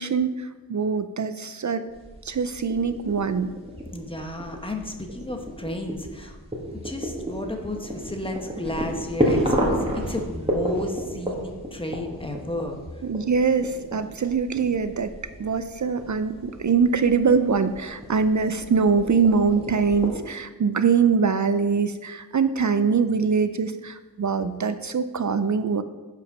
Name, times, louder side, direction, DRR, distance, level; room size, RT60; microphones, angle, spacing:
voice 1, 0.0-1.8 2.2-3.5 13.0-15.1 15.4-25.8, right 5 dB, 50° right, 11 dB, 0.5 m, -23 dB
sound 1, 1.9-20.1, equal, 15° right, 1.9 m, -32 dB
voice 2, 3.9-6.4 6.7-12.8, left 1 dB, 15° left, 3 dB, 1.2 m, -33 dB
7.1 x 5.6 x 5.5 m, 1.2 s
wide cardioid pair, 50°, 38 cm